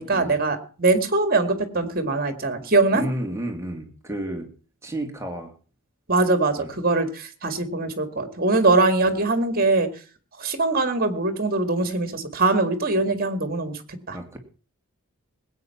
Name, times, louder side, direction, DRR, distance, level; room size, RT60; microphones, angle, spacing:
voice 1, 0.0-3.0 6.1-9.9 10.4-13.8 14.1-14.2, right 3 dB, 40° right, 9 dB, 2.1 m, -22 dB
voice 2, 2.9-4.5 4.8-5.5 6.6-6.8 14.1-14.4, right 1 dB, 15° right, 3 dB, 2.3 m, -31 dB
19.5 x 8.8 x 5.8 m, 0.39 s
head